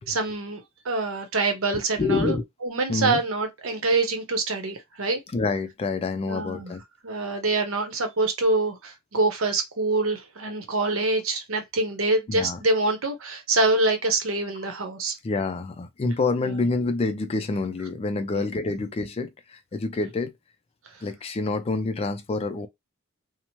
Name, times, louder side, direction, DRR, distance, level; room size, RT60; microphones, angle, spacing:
voice 1, 0.1-2.4 2.6-5.2 6.2-6.7 7.0-15.2 16.4-16.6 18.3-18.4, right 2 dB, 65° right, 0.8 m, -25 dB
voice 2, 1.7-2.4 2.9-3.2 5.3-6.8 12.3-12.6 15.2-20.3 21.0-22.7, left 3 dB, 30° left, 0.3 m, -27 dB
2.9 x 2.0 x 2.9 m
head